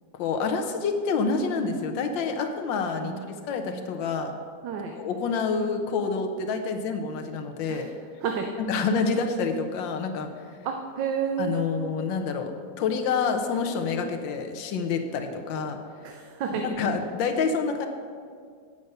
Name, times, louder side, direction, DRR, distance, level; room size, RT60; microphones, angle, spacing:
voice 1, 0.2-4.3 5.0-7.9 8.6-10.4 11.4-12.5 12.8-15.8 16.5-17.9, left 5 dB, 85° left, 5 dB, 1.6 m, -28 dB
voice 2, 3.0-3.9 4.6-5.0 7.7-7.9 8.2-8.5 10.6-11.6 16.0-16.7, right 6 dB, 80° right, 3 dB, 1.4 m, -31 dB
8.7 x 6.8 x 6.5 m, 2.1 s
omnidirectional pair, 2.0 m